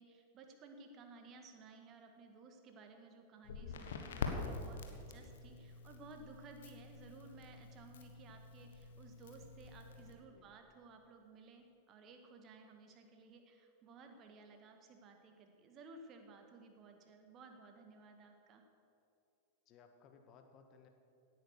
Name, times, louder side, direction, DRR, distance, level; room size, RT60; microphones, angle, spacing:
voice 1, 0.0-18.6, right 3 dB, 35° right, 5 dB, 1.9 m, -57 dB
Crackle, 3.4-10.1, left 5 dB, 60° left, 1.6 m, -46 dB
voice 2, 19.7-20.9, left 6 dB, 35° left, 6 dB, 1.6 m, -62 dB
17.5 x 9.4 x 6.6 m, 2.7 s
figure-of-eight pair, 90°, 0 cm